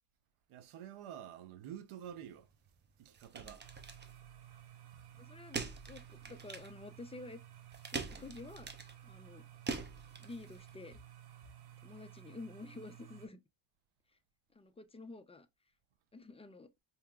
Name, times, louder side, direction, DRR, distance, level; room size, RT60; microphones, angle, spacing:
voice 1, 0.5-2.5 3.0-3.6, right 10 dB, 90° right, 0.7 m, -48 dB
sound 1, 2.0-10.8, right 4 dB, 20° right, 0.6 m, -45 dB
sound 2, 3.6-13.3, right 11 dB, 50° right, 0.8 m, -55 dB
voice 2, 5.2-5.6 5.9-7.4 7.9-8.7 9.0-9.4 10.2-11.0 11.8-13.4 14.6-15.5 16.1-16.7, left 3 dB, 15° left, 0.3 m, -50 dB
4.5 x 2.9 x 2.2 m
cardioid pair, 95°, 49 cm